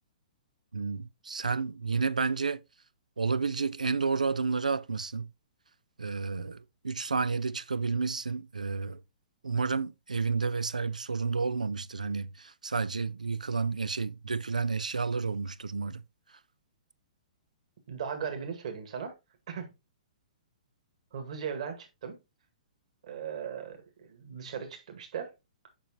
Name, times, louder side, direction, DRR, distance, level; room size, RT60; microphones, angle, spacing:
voice 1, 0.7-2.6 3.2-5.3 6.0-9.0 9.4-16.0, right 4 dB, 85° right, 0.5 m, -31 dB
voice 2, 17.9-19.1 19.5-19.7 21.1-22.2 23.0-25.3, right 7 dB, 60° right, 1.8 m, -38 dB
7.2 x 5.1 x 3.0 m
figure-of-eight pair, 120°, 4 cm